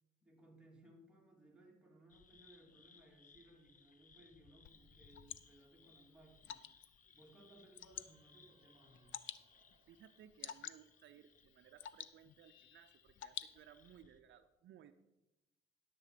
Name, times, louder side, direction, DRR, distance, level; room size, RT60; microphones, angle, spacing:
voice 1, 0.2-6.7 7.1-9.1, right 1 dB, 5° right, -2 dB, 3.0 m, -63 dB
sound 1, 2.1-14.2, left 5 dB, 40° left, 0.9 m, -68 dB
Water / Drip, 4.6-14.0, left 11 dB, 75° left, 0.6 m, -53 dB
sound 2, 7.8-11.4, right 3 dB, 30° right, 1.2 m, -76 dB
voice 2, 9.9-14.9, right 10 dB, 70° right, 10 dB, 0.6 m, -61 dB
10.5 x 7.4 x 5.0 m, 0.95 s
cardioid pair, 90°, 20 cm